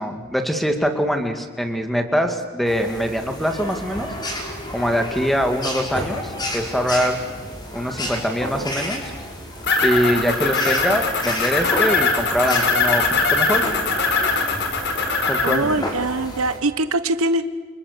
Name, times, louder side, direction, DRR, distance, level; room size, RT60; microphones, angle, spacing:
voice 1, 0.0-4.1 4.7-7.2 7.7-9.1 9.8-13.6 15.3-15.6, equal, ahead, 5 dB, 2.2 m, -23 dB
sound 1, 2.6-16.6, left 1 dB, 20° left, 5.0 m, -31 dB
sound 2, 9.6-15.6, left 3 dB, 50° left, 4.6 m, -21 dB
voice 2, 15.4-17.4, right 2 dB, 80° right, 11 dB, 1.3 m, -22 dB
30.0 x 27.5 x 6.8 m, 1.5 s
head